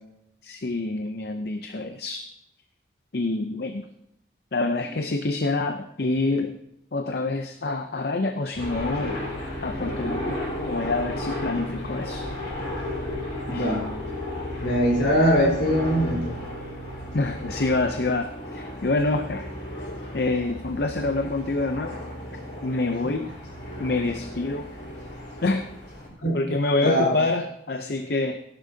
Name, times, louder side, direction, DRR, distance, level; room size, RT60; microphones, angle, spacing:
voice 1, 0.4-2.3 3.1-3.9 4.5-6.6 6.9-9.2 9.6-10.4 10.7-12.3 13.5-13.8 17.1-19.5 20.1-22.0 22.6-23.3 23.8-24.7 25.4-25.7 26.3-28.4, left 2 dB, 55° left, 7 dB, 0.6 m, -26 dB
sound 1, 8.5-26.1, left 1 dB, 90° left, 5.0 m, -34 dB
voice 2, 13.5-13.9 14.6-16.3 23.0-23.1 26.2-26.4 26.8-27.1, equal, 75° left, -2 dB, 3.9 m, -22 dB
16.5 x 11.5 x 2.8 m, 0.82 s
head